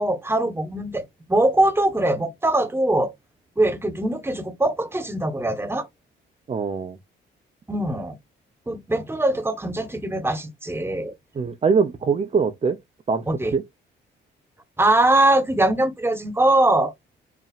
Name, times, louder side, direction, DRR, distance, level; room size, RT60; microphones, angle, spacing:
voice 1, 0.0-3.1 3.6-5.9 7.7-8.2 8.7-11.1 13.3-13.5 14.8-16.9, right 1 dB, 10° right, 1.3 m, -22 dB
voice 2, 6.5-7.0 11.3-12.8 13.1-13.6, right 5 dB, 30° right, 0.8 m, -23 dB
5.7 x 2.9 x 2.5 m
cardioid pair, 90°, 20 cm